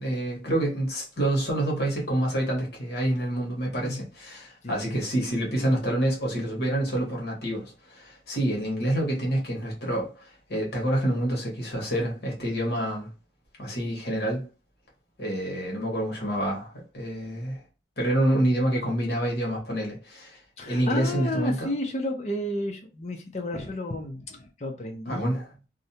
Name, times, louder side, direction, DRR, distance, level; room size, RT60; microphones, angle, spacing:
voice 1, 0.0-13.1 13.6-14.5 15.2-17.6 18.0-21.7 25.1-25.4, right 1 dB, 60° left, 1.1 m, -27 dB
voice 2, 20.6-25.3, left 1 dB, 40° left, 0.5 m, -32 dB
2.5 x 2.1 x 2.7 m
head